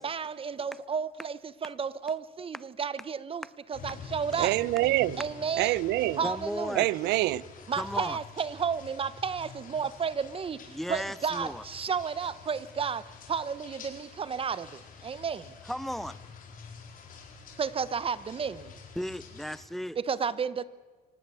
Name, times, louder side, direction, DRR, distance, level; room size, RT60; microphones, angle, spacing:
voice 1, 0.0-4.6 5.2-5.8 6.2-6.9 7.7-15.5 17.6-18.7 20.0-20.6, right 6 dB, 35° right, 0.9 m, -32 dB
sound 1, 3.7-19.6, left 5 dB, 55° left, 4.8 m, -48 dB
voice 2, 4.4-5.2 5.6-6.2 6.7-7.4, right 17 dB, 85° right, 0.7 m, -26 dB
voice 3, 6.2-6.9 7.8-8.2 10.7-11.6 15.7-16.2 19.0-20.0, equal, ahead, 0.6 m, -35 dB
24.5 x 18.0 x 8.2 m
cardioid pair, 110°, 17 cm